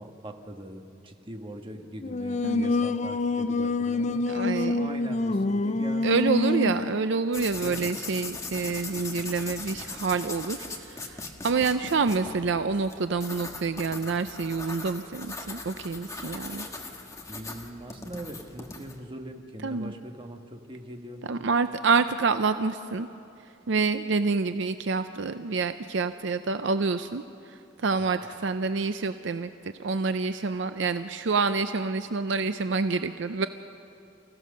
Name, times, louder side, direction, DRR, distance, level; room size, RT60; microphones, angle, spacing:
voice 1, 0.0-6.2 7.5-7.9 17.3-21.2 28.0-28.1, right 1 dB, 25° right, 4 dB, 1.4 m, -41 dB
Singing, 2.0-6.9, left 2 dB, 35° left, 0.5 m, -26 dB
voice 2, 4.3-4.9 6.0-16.7 19.6-19.9 21.3-23.1 23.7-29.5 29.8-33.5, right 4 dB, 65° right, 10 dB, 0.5 m, -27 dB
sound 1, 7.3-19.0, left 3 dB, 15° left, 1.5 m, -40 dB
29.0 x 15.5 x 6.6 m, 2.6 s
head